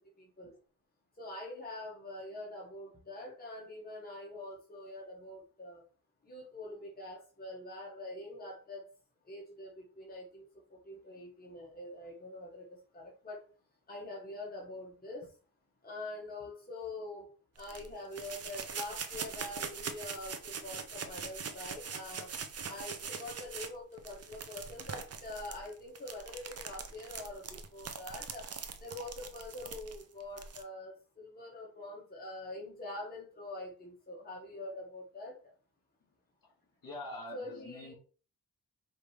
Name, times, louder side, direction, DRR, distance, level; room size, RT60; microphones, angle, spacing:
voice 1, 0.2-0.6 1.2-5.8 6.2-8.9 9.2-13.4 13.9-15.3 15.8-17.3 17.6-22.3 22.6-28.5 28.8-35.4 37.3-37.9, left 2 dB, 25° left, -2 dB, 1.2 m, -45 dB
sound 1, 17.6-30.6, right 6 dB, 40° right, 0.6 m, -42 dB
voice 2, 36.8-37.9, left 1 dB, 60° left, -2 dB, 2.0 m, -44 dB
4.9 x 2.7 x 3.2 m, 0.39 s
cardioid pair, 85°, 39 cm